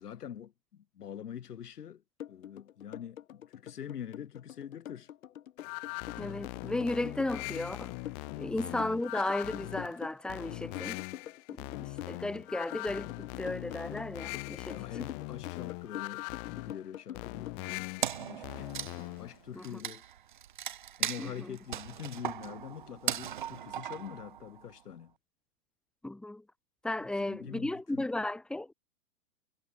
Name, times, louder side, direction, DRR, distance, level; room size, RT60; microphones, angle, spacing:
voice 1, 0.0-2.0 2.3-5.1 8.3-8.5 14.7-18.7 19.2-20.0 21.0-25.1 27.1-28.1, left 9 dB, 90° left, 7.1 m, -44 dB
sound 1, 2.2-17.6, left 11 dB, 60° left, 3.3 m, -45 dB
sound 2, 5.6-19.4, left 40 dB or more, 25° left, 5.5 m, -41 dB
voice 2, 6.2-7.9 8.4-11.0 11.6-14.8 19.6-19.8 21.2-21.6 26.0-26.4 26.8-28.7, left 2 dB, ahead, 2.6 m, -35 dB
Wood, 18.0-24.7, right 10 dB, 35° right, 0.5 m, -38 dB
supercardioid pair, 180°, 45 cm